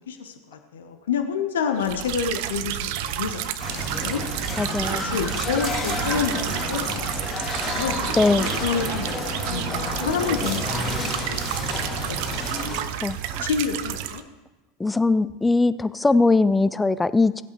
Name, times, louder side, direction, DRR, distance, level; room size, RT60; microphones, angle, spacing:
voice 1, 0.1-4.2 4.9-7.1 7.6-8.0 8.6-11.1 11.3-11.6 12.0-12.4 13.4-14.2, left 6 dB, 70° left, 6 dB, 0.9 m, -29 dB
sound 1, 1.8-14.2, right 12 dB, 55° right, 0.5 m, -30 dB
sound 2, 3.6-12.8, left 2 dB, 30° left, 2.4 m, -30 dB
voice 2, 4.6-5.0 8.2-8.5 13.0-13.5 14.8-17.4, left 3 dB, 10° left, 15 dB, 0.4 m, -21 dB
16.0 x 8.3 x 3.1 m, 1.1 s
figure-of-eight pair, 80°, 0 cm